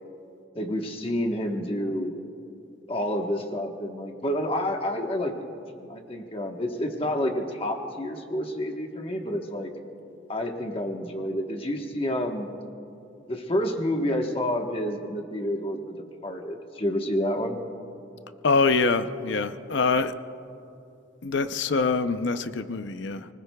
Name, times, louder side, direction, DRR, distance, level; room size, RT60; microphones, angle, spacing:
voice 1, 0.5-2.1 2.9-5.5 5.8-9.7 10.3-12.6 13.3-17.6, left 1 dB, 30° left, 1.2 m, -29 dB
voice 2, 18.4-20.1 21.2-23.3, left 4 dB, 65° left, 0.6 m, -24 dB
30.0 x 19.5 x 2.3 m
head